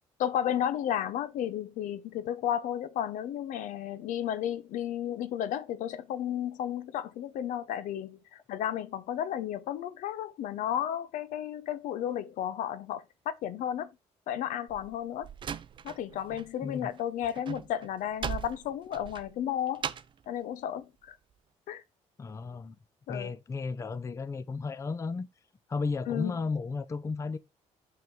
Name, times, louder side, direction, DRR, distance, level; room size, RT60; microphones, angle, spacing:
voice 1, 0.2-13.9 14.3-15.3 15.8-19.8 20.3-21.2 21.7-21.8 23.1-23.3 26.1-26.3, left 10 dB, 75° left, 0.6 m, -33 dB
Slam, 14.7-16.5 16.8-20.2, right 8 dB, 40° right, 0.5 m, -39 dB
voice 2, 22.2-22.8 23.1-25.3 25.7-27.4, left 4 dB, 20° left, 0.5 m, -34 dB
5.7 x 3.8 x 4.6 m
cardioid pair, 105°, 13 cm